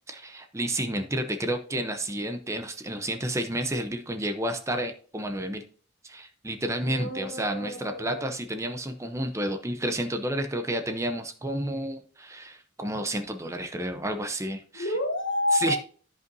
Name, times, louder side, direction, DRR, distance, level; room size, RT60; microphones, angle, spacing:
voice 1, 0.1-5.6 6.0-14.9 15.5-15.8, right 1 dB, 15° right, 6 dB, 0.6 m, -31 dB
voice 2, 6.8-8.3 14.7-15.8, left 1 dB, 55° left, 5 dB, 1.3 m, -29 dB
14.0 x 5.3 x 2.7 m, 0.43 s
head